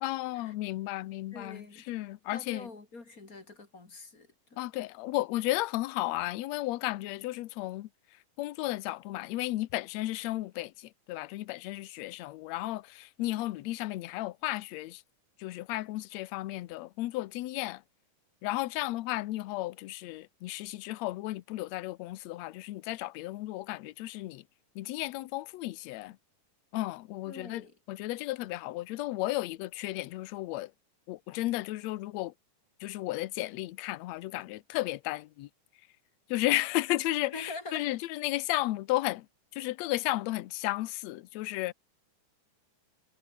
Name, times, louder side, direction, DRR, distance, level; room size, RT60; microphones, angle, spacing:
voice 1, 0.0-2.7 4.6-7.9 8.4-15.0 15.4-17.8 18.4-24.4 24.8-26.2 26.7-30.7 31.1-32.3 32.8-35.5 36.3-39.3 39.5-41.7, left 17 dB, 70° left, 1.9 m, -34 dB
voice 2, 1.3-1.8 2.3-4.6 27.3-27.7 37.1-37.9, left 3 dB, 30° left, 2.9 m, -45 dB
omnidirectional pair, 3.6 m